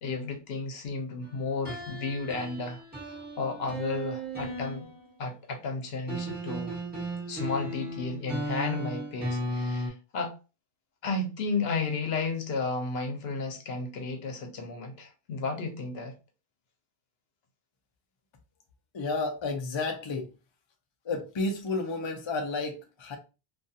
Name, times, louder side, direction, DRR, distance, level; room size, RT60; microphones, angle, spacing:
voice 1, 0.0-4.9 5.2-6.8 7.3-10.3 11.0-16.1, left 3 dB, 70° left, 0.9 m, -33 dB
sound 1, 1.7-5.2 6.1-9.9, equal, 10° right, 1.2 m, -35 dB
voice 2, 18.9-20.3 21.0-23.2, left 3 dB, 40° left, 0.4 m, -31 dB
2.5 x 2.3 x 2.6 m
omnidirectional pair, 1.1 m